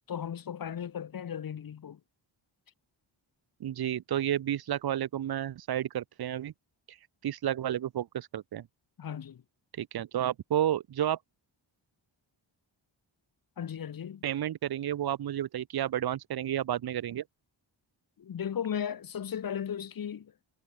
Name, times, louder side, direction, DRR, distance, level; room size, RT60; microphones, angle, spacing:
voice 1, 0.1-2.0 9.0-9.4 13.6-14.2 18.2-20.3, left 8 dB, 45° left, 0.7 m, -36 dB
voice 2, 3.6-6.5 7.2-8.7 9.8-11.2 14.2-17.2, right 11 dB, 50° right, 0.6 m, -31 dB
cardioid pair, 55°, 48 cm